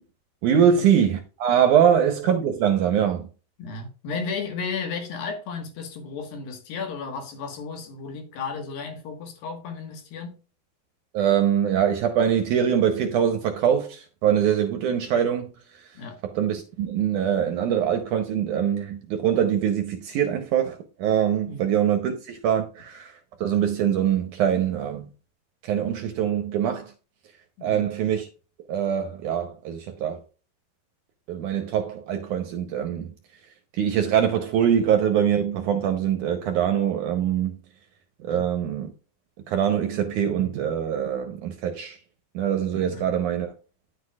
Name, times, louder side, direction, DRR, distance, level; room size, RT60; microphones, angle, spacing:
voice 1, 0.4-3.3 11.1-15.5 16.2-23.1 23.4-25.1 25.6-26.9 27.6-28.3 28.7-30.2 31.3-33.1 33.7-37.6 38.2-38.9 39.5-42.0 42.3-43.5, right 9 dB, 75° right, 1.9 m, -23 dB
voice 2, 3.6-10.4 15.9-16.2 21.5-21.7 27.6-27.9 38.3-38.4 42.8-43.1, left 5 dB, 75° left, 3.2 m, -34 dB
10.0 x 8.1 x 2.4 m
omnidirectional pair, 4.3 m